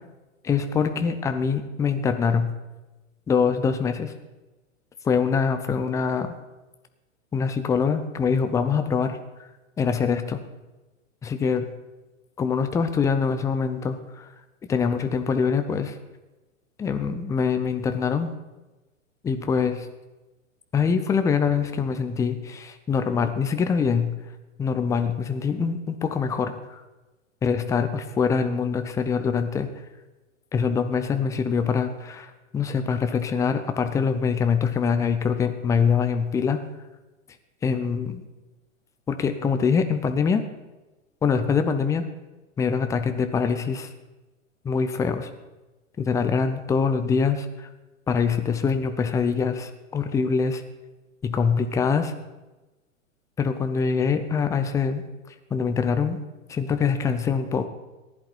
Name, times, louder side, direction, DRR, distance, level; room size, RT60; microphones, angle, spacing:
voice 1, 0.4-2.5 3.3-4.1 5.0-6.3 7.3-9.2 9.8-10.4 11.2-11.7 12.4-14.3 14.7-16.0 16.8-18.3 19.2-19.9 20.7-24.1 24.6-26.8 27.4-29.7 30.5-36.6 37.6-38.2 39.1-40.4 41.2-42.0 42.6-43.9 44.6-45.3 46.0-47.7 48.1-50.6 51.2-52.1 53.4-55.0 55.5-56.2 56.5-57.7, left 6 dB, 10° left, 9 dB, 0.5 m, -24 dB
15.0 x 11.0 x 4.4 m, 1.1 s
figure-of-eight pair, 105°, 40 cm